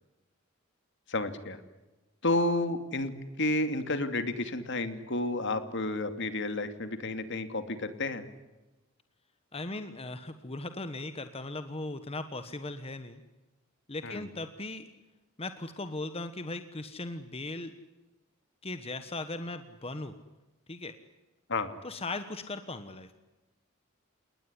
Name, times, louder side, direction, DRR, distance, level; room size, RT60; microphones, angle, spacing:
voice 1, 1.1-1.6 2.2-3.1 3.4-8.2 14.0-14.2 21.5-21.7, left 2 dB, 60° left, 9 dB, 2.4 m, -31 dB
voice 2, 9.5-13.2 13.9-14.8 15.4-17.7 18.6-20.2 20.7-20.9 21.8-23.2, left 2 dB, 30° left, 10 dB, 1.3 m, -38 dB
29.0 x 19.5 x 10.0 m, 1.1 s
head